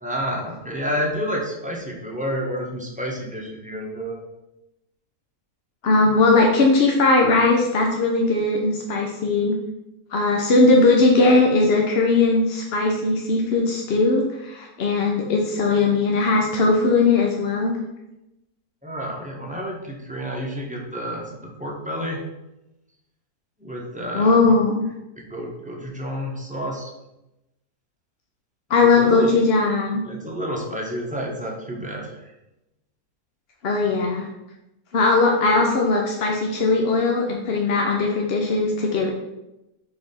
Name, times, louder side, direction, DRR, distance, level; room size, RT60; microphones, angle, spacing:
voice 1, 0.0-4.2 18.8-22.2 23.6-24.5 25.2-26.9 28.8-29.3 30.0-32.2, equal, 5° right, -2 dB, 1.0 m, -30 dB
voice 2, 5.8-9.5 10.1-17.8 24.1-24.9 28.7-30.0 33.6-34.3 34.9-39.1, left 3 dB, 50° left, 1 dB, 0.8 m, -19 dB
4.9 x 4.3 x 5.4 m, 0.94 s
omnidirectional pair, 1.6 m